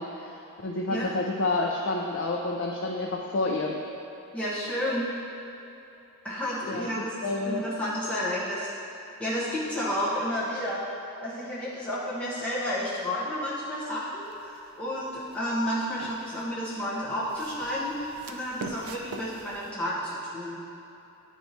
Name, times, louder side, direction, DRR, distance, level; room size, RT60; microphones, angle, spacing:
voice 1, 0.0-3.8 6.7-7.6, left 2 dB, 60° left, -1 dB, 0.4 m, -29 dB
voice 2, 4.3-5.1 6.2-8.7 9.2-10.8 11.2-20.6, equal, 5° left, -10 dB, 1.1 m, -31 dB
sound 1, 14.2-14.7 15.3-16.5 17.1-19.7, right 4 dB, 90° right, 0.4 m, -42 dB
9.1 x 4.5 x 2.7 m, 2.9 s
head